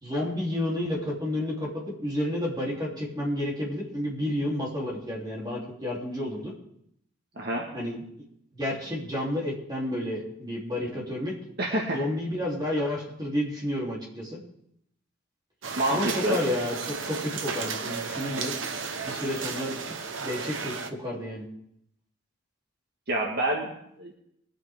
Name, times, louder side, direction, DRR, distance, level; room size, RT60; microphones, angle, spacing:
voice 1, 0.0-6.5 7.7-8.0 8.5-11.4 11.9-14.4 15.9-18.5 19.0-21.4, left 1 dB, 20° right, -4 dB, 3.4 m, -31 dB
voice 2, 7.4-7.7 11.6-12.0 15.8-16.4 23.1-24.1, right 1 dB, 55° right, -1 dB, 1.9 m, -27 dB
sound 1, 15.6-20.9, right 5 dB, 85° right, 1.1 m, -34 dB
22.5 x 8.7 x 3.7 m, 0.74 s
head